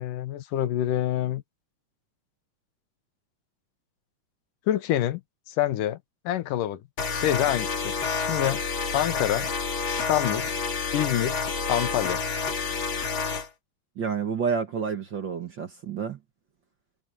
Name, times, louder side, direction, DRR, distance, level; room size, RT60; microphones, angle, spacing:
voice 1, 0.0-1.4 4.7-5.2 5.5-6.0 6.3-6.8 7.1-8.6 8.9-9.5 9.9-10.5 10.9-11.4 11.7-12.2, left 12 dB, 85° left, 2.7 m, -26 dB
sound 1, 7.0-13.5, left 5 dB, 40° left, 2.9 m, -29 dB
voice 2, 14.0-16.2, right 6 dB, 45° right, 1.6 m, -29 dB
omnidirectional pair, 3.7 m